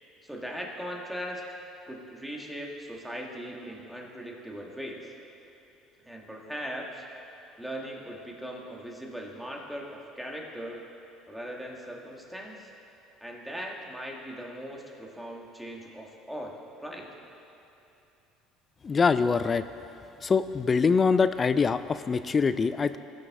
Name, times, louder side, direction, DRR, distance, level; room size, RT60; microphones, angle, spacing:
voice 1, 0.2-1.4 1.9-5.1 6.0-7.0 7.6-10.8 11.3-12.7 13.2-17.1, equal, ahead, -1 dB, 1.6 m, -39 dB
voice 2, 18.8-19.6 20.2-23.0, left 5 dB, 30° left, 13 dB, 0.3 m, -24 dB
18.5 x 6.5 x 3.7 m, 2.8 s
supercardioid pair, 105°, 0 cm